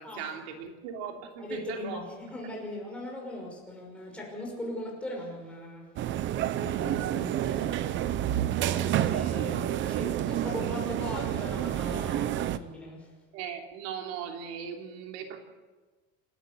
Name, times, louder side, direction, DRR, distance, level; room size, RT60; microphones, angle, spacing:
voice 1, 0.0-2.0 13.3-15.4, right 7 dB, 85° right, 3 dB, 3.2 m, -38 dB
voice 2, 1.4-5.9 6.5-8.3 8.7-13.1, left 1 dB, 5° left, -2 dB, 6.1 m, -39 dB
sound 1, 6.0-12.6, right 11 dB, 35° right, 0.8 m, -29 dB
28.5 x 13.0 x 8.4 m, 1.3 s
cardioid pair, 165°, 31 cm